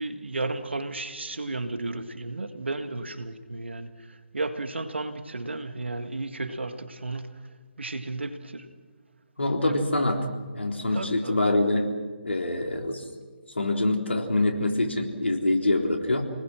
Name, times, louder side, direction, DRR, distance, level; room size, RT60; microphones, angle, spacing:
voice 1, 0.0-7.4 7.8-8.7 9.7-9.8 10.8-11.4, right 2 dB, 75° right, 2.0 m, -33 dB
voice 2, 9.4-10.3 10.5-11.9 12.2-13.0 13.5-16.2, left 2 dB, 75° left, 3.9 m, -25 dB
28.0 x 20.0 x 6.3 m
figure-of-eight pair, 145°, 6 cm